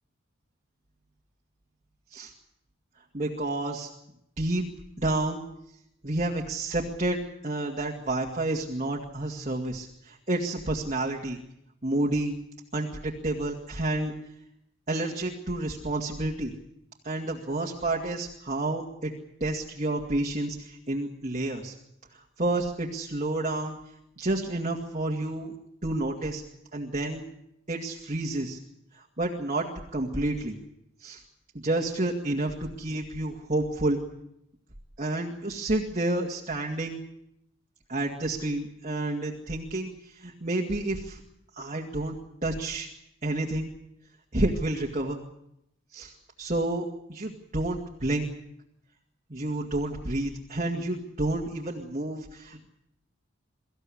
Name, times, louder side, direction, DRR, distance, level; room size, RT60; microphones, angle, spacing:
voice 1, 3.1-3.9 4.4-4.7 5.0-5.4 6.0-11.4 11.8-12.4 12.7-14.1 14.9-16.5 17.0-19.1 19.4-21.7 22.1-23.8 24.2-25.5 25.8-26.4 26.7-27.2 27.7-28.6 28.9-29.7 29.9-30.6 31.0-31.2 31.5-34.0 35.0-37.0 37.9-41.2 41.5-42.2 42.4-42.9 43.2-43.7 44.3-45.2 45.9-46.1 46.4-48.3 49.3-52.7, right 2 dB, 35° right, -1 dB, 2.2 m, -30 dB
24.5 x 15.0 x 9.9 m, 0.80 s
head